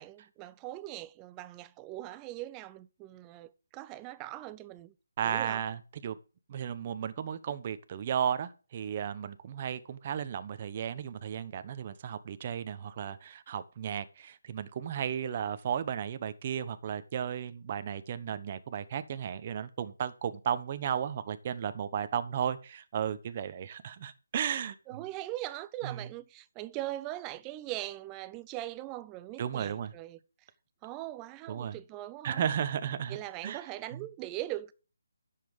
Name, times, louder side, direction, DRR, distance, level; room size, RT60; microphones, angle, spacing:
voice 1, 0.0-4.9 5.2-5.6 24.9-30.2 30.8-32.5 33.1-34.7, right 15 dB, 15° right, 0.5 m, -41 dB
voice 2, 5.2-6.2 6.5-24.8 25.8-26.1 29.4-29.9 31.5-31.8 32.2-33.2 33.4-33.6 33.9-34.1, right 8 dB, 30° right, 1.1 m, -34 dB
10.5 x 7.6 x 5.0 m
figure-of-eight pair, 165°, 0 cm